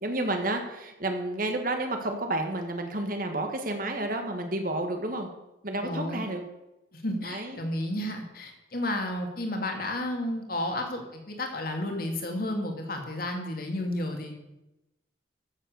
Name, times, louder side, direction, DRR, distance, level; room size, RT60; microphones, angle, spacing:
voice 1, 0.0-5.3 5.6-6.4 7.2-7.6, right 1 dB, 45° right, 5 dB, 1.7 m, -30 dB
voice 2, 5.8-6.2 6.9-14.3, left 1 dB, 50° left, 3 dB, 2.6 m, -32 dB
14.5 x 7.7 x 6.9 m, 0.94 s
head